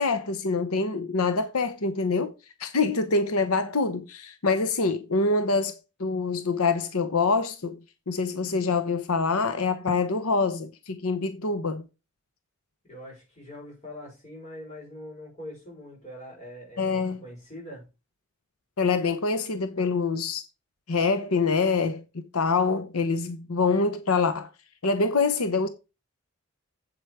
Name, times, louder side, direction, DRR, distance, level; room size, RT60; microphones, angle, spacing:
voice 1, 0.0-2.3 2.6-7.8 8.1-11.9 16.8-17.2 18.8-20.4 20.9-24.5 24.8-25.7, left 4 dB, 85° left, 0.9 m, -25 dB
voice 2, 12.8-17.9, left 1 dB, 30° left, 6.0 m, -43 dB
8.0 x 7.9 x 4.8 m
head